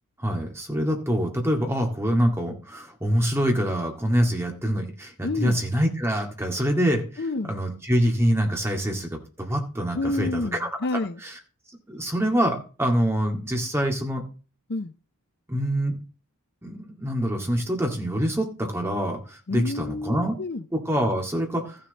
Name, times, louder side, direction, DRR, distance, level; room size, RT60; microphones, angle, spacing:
voice 1, 0.2-7.0 7.5-10.7 11.9-14.2 15.5-16.0 16.6-20.3 20.7-21.8, equal, 10° right, 1 dB, 2.0 m, -25 dB
voice 2, 5.2-5.6 7.2-7.5 9.9-11.2 14.7-14.9 19.5-20.6, left 2 dB, 50° left, 11 dB, 0.6 m, -29 dB
14.0 x 6.7 x 4.0 m, 0.36 s
head